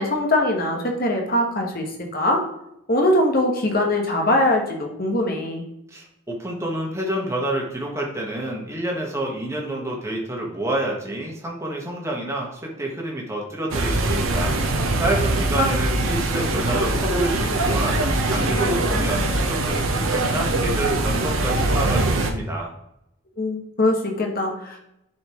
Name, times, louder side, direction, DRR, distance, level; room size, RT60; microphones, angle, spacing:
voice 1, 0.0-2.4 2.9-5.6 15.6-15.7 23.4-24.8, left 1 dB, 45° left, 2 dB, 1.3 m, -22 dB
voice 2, 5.9-22.7, right 1 dB, 15° right, -1 dB, 1.4 m, -28 dB
sound 1, 13.7-22.3, right 2 dB, 75° right, 1.0 m, -22 dB
10.0 x 4.2 x 3.1 m, 0.82 s
head